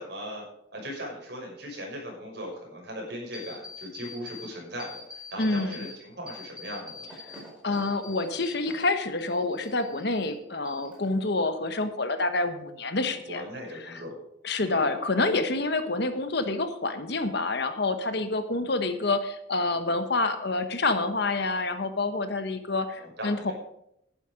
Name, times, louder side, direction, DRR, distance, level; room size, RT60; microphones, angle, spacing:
voice 1, 0.0-7.1 13.0-14.2 14.6-14.9 22.9-23.5, equal, 55° right, -1 dB, 5.7 m, -39 dB
sound 1, 3.3-4.5 4.8-5.9 6.3-8.9 9.2-10.3 10.7-11.3, left 4 dB, 5° right, 4.8 m, -44 dB
voice 2, 5.4-5.7 7.6-13.4 14.4-23.5, left 2 dB, 60° left, 9 dB, 1.2 m, -27 dB
11.5 x 10.5 x 5.1 m, 0.76 s
head